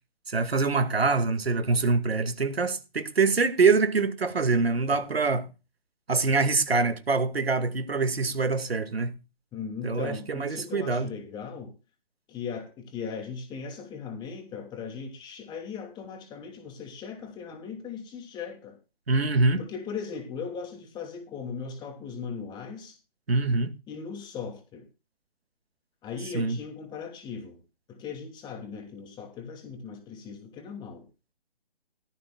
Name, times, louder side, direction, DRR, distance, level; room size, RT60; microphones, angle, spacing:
voice 1, 0.3-5.5 6.1-9.2 9.8-11.1 19.1-19.6 23.3-23.7 26.3-26.6, right 4 dB, 80° right, 2.3 m, -24 dB
voice 2, 9.5-11.7 12.3-18.8 19.6-23.0 23.9-24.9 26.0-27.6 27.9-31.1, left 6 dB, 15° left, 2.8 m, -38 dB
17.0 x 13.5 x 2.4 m
figure-of-eight pair, 145°, 30 cm